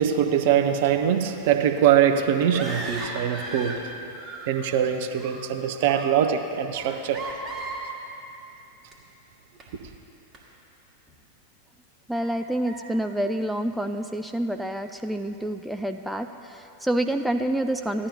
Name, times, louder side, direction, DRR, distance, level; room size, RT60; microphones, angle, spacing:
voice 1, 0.0-3.9 4.5-7.2, right 9 dB, 50° right, 7 dB, 0.7 m, -22 dB
sound 1, 2.4-3.9 4.1-4.8 5.1-5.5 5.9-6.2 6.7-7.9 8.9-9.0 9.6-9.7 10.3-10.4 11.1-11.2 12.1-12.3 12.6-12.8, right 2 dB, 20° right, 1.6 m, -36 dB
voice 2, 12.1-18.1, right 1 dB, ahead, 6 dB, 0.3 m, -28 dB
15.5 x 11.0 x 2.7 m, 2.8 s
figure-of-eight pair, 90°, 0 cm